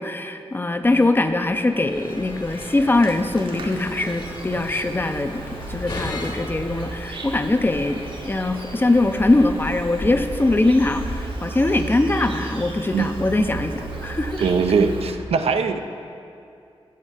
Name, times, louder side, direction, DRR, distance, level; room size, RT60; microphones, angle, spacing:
voice 1, 0.0-5.4 5.7-14.4, left 2 dB, 20° left, 8 dB, 0.4 m, -22 dB
sound 1, 0.8-11.3, left 2 dB, 45° left, 1.1 m, -39 dB
Insect, 1.9-15.2, right 3 dB, 55° right, 0.8 m, -35 dB
sound 2, 7.6-11.4, left 2 dB, 70° left, 0.9 m, -37 dB
voice 2, 12.9-13.5 14.4-15.8, right 5 dB, 80° right, 8 dB, 0.4 m, -21 dB
7.1 x 5.0 x 5.6 m, 2.5 s
cardioid pair, 75°, 10 cm